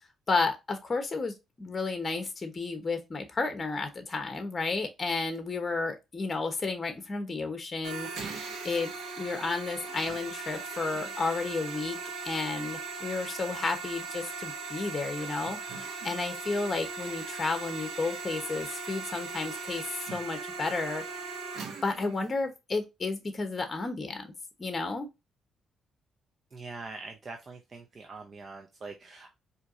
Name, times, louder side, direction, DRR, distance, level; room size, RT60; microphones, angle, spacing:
voice 1, 0.3-8.9 9.2-12.0 12.2-21.0 21.8-24.3 24.6-25.1, left 3 dB, 30° left, 1.0 m, -32 dB
sound 1, 7.8-22.3, right 4 dB, 75° right, 1.1 m, -39 dB
voice 2, 26.5-29.3, right 3 dB, 40° right, 0.6 m, -43 dB
4.5 x 2.8 x 2.6 m
cardioid pair, 90°, 0 cm